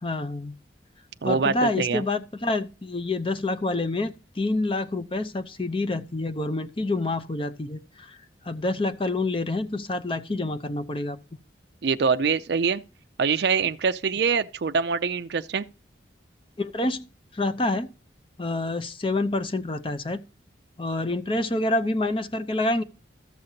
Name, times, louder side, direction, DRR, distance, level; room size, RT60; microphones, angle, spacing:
voice 1, 0.0-0.5 1.2-8.2 8.4-11.2 16.6-17.9 18.4-20.2 20.8-22.8, left 2 dB, 30° left, 0.7 m, -27 dB
voice 2, 1.2-2.0 11.8-12.8 13.2-15.7, right 5 dB, 60° right, 0.4 m, -24 dB
14.0 x 6.5 x 2.8 m
head